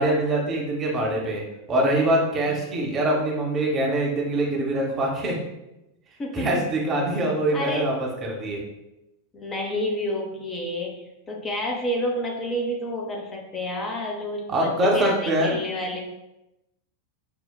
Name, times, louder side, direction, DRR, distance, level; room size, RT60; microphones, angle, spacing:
voice 1, 0.0-1.4 1.7-5.4 6.3-8.6 14.5-15.6, right 1 dB, 25° right, -1 dB, 0.7 m, -24 dB
voice 2, 6.2-6.6 7.5-7.9 9.3-16.0, left 1 dB, 20° left, -1 dB, 0.5 m, -29 dB
4.5 x 2.1 x 2.2 m, 0.92 s
figure-of-eight pair, 90°, 0 cm